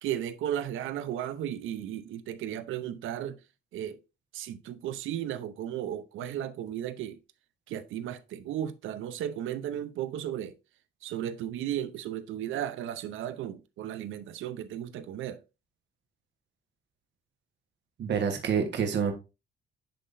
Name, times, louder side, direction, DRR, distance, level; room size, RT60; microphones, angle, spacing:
voice 1, 0.0-3.4 3.7-4.0 4.3-7.2 7.7-10.5 11.0-15.4, right 11 dB, 80° right, 0.7 m, -35 dB
voice 2, 18.0-19.1, right 7 dB, 60° right, 1.4 m, -27 dB
10.5 x 3.8 x 2.6 m
cardioid pair, 90°, 20 cm